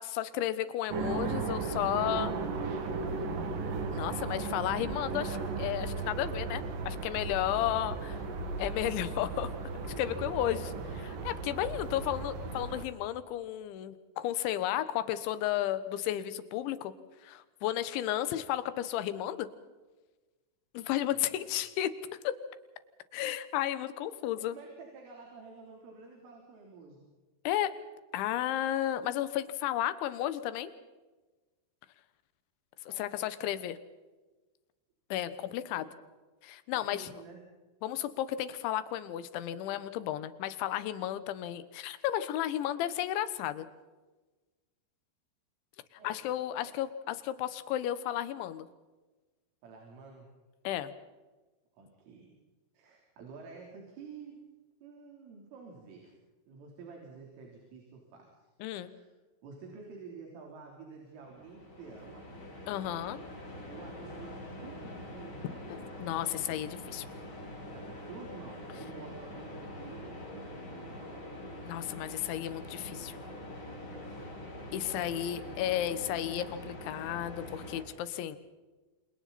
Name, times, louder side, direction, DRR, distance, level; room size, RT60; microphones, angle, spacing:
voice 1, 0.0-2.3 3.9-8.2 8.6-9.5 10.0-10.7 11.1-16.9 17.2-19.5 20.8-21.9 22.3-22.4 23.1-24.6 27.5-27.8 28.1-30.7 32.9-33.8 35.1-35.9 36.4-37.1 37.8-43.7 46.0-48.7 50.7-50.9 58.6-58.9 62.7-63.2 66.0-67.1 71.6-73.2 74.7-78.4, left 12 dB, 75° left, 13 dB, 3.5 m, -33 dB
sound 1, 0.9-12.9, right 4 dB, 55° right, 3.4 m, -36 dB
voice 2, 2.9-3.6 10.1-10.8 21.1-21.5 24.3-27.0 32.9-33.3 35.5-36.0 36.7-37.4 45.9-46.2 46.6-46.7 49.6-50.3 51.7-52.3 52.7-54.4 54.8-56.1 56.5-58.5 58.8-59.1 59.4-62.2 63.7-65.7 67.7-71.2 73.9-75.4, right 4 dB, 85° right, 0 dB, 6.3 m, -50 dB
sound 2, 61.2-77.8, left 1 dB, 25° left, 5.4 m, -44 dB
28.5 x 28.0 x 4.3 m, 1.2 s
omnidirectional pair, 5.6 m